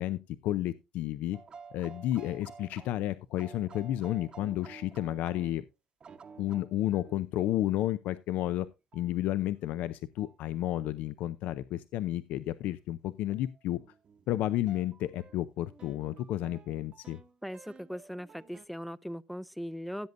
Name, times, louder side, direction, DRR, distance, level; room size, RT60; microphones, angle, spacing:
voice 1, 0.0-1.4 1.7-5.6 6.4-8.7 8.9-13.8 14.3-17.2, left 13 dB, 70° left, 0.5 m, -32 dB
sound 1, 1.3-5.6 6.0-7.3 8.9-9.1 10.2-10.4 10.8-11.0 13.3-18.7, right 5 dB, 35° right, 0.9 m, -52 dB
voice 2, 17.4-20.1, equal, ahead, 0.4 m, -39 dB
15.5 x 8.0 x 2.6 m
cardioid pair, 110°, 3 cm